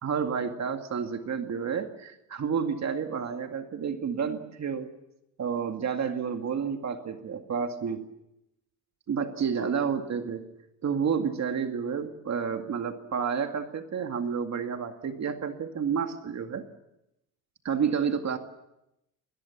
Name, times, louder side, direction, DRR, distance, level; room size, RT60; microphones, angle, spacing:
voice 1, 0.0-4.9 5.4-8.1 9.1-10.5 10.8-16.6 17.6-18.4, right 6 dB, 50° right, 6 dB, 2.2 m, -30 dB
26.5 x 20.5 x 7.2 m, 0.87 s
cardioid pair, 90°, 36 cm